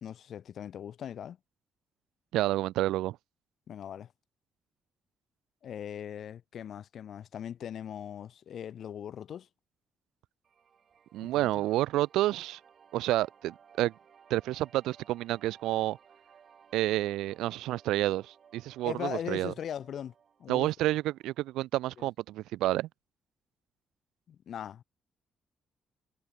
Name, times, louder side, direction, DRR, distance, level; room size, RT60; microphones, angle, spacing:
voice 1, 0.0-1.4 3.7-4.1 5.6-9.5 11.2-11.6 18.8-20.1 20.4-20.7 22.0-22.1 24.3-24.8, left 9 dB, 65° left, 0.4 m, -40 dB
voice 2, 2.3-3.2 11.1-12.6 12.9-13.9 14.3-16.0 16.7-19.5 20.5-22.9, right 15 dB, 80° right, 0.4 m, -29 dB
sound 1, 10.4-21.5, right 7 dB, 55° right, 6.5 m, -60 dB
hypercardioid pair, 50°, 0 cm